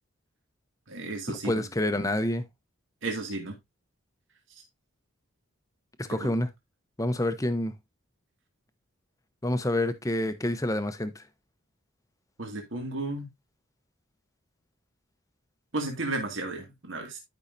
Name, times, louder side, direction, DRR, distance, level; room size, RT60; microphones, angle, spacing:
voice 1, 0.9-1.7 3.0-3.6 6.2-6.3 12.4-13.3 15.7-17.2, right 2 dB, 60° right, 2.1 m, -33 dB
voice 2, 1.4-2.4 6.0-6.5 7.0-7.7 9.4-11.2, left 1 dB, 15° left, 0.7 m, -27 dB
11.5 x 5.5 x 2.6 m
head